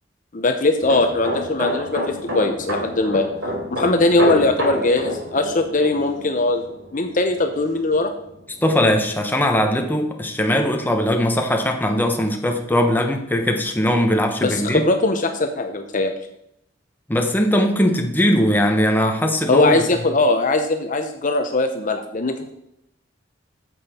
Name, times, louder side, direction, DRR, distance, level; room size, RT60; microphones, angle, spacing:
voice 1, 0.3-3.3 3.7-6.6 6.9-8.1 14.4-16.1 19.5-22.5, left 2 dB, 45° left, 6 dB, 0.7 m, -20 dB
sound 1, 0.8-8.3 8.6-8.9, equal, 85° right, 3.9 m, -28 dB
voice 2, 8.6-14.9 17.1-19.8, equal, 10° left, 4 dB, 0.9 m, -20 dB
9.3 x 7.1 x 4.3 m, 0.78 s
head